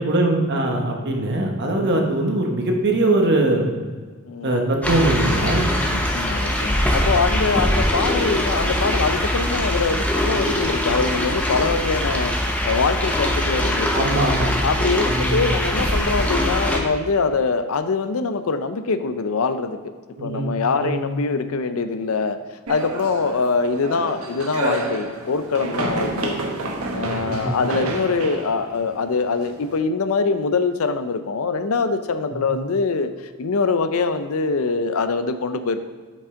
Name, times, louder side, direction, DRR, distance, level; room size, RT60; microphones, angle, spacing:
voice 1, 0.0-3.7 4.4-5.7 13.9-14.5 15.1-15.4 20.2-20.5 20.8-21.0 27.2-27.6 32.3-32.5, right 2 dB, 50° right, 2 dB, 1.1 m, -21 dB
sound 1, 4.8-16.8, left 1 dB, 5° left, 0.8 m, -22 dB
voice 2, 5.9-14.2 14.6-19.8 20.2-22.4 22.7-26.4 26.9-35.9, left 4 dB, 70° left, 10 dB, 0.5 m, -23 dB
sound 2, 22.7-29.7, right 2 dB, 80° right, 1.1 m, -29 dB
8.4 x 5.4 x 3.7 m, 1.5 s
head